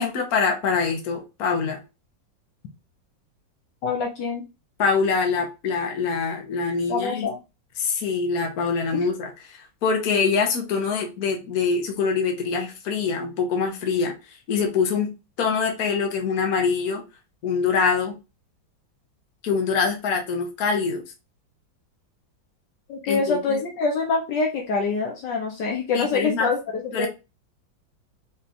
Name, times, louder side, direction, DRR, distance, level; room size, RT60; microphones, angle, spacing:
voice 1, 0.0-1.8 4.8-7.3 7.8-15.1 15.4-17.0 17.4-18.2 19.4-21.0 23.1-23.6 25.9-26.5 26.9-27.1, left 5 dB, 55° left, 1.4 m, -24 dB
voice 2, 3.8-4.4 6.9-7.4 8.9-9.1 22.9-27.1, left 4 dB, 70° left, 1.5 m, -25 dB
4.2 x 3.5 x 2.5 m
omnidirectional pair, 2.0 m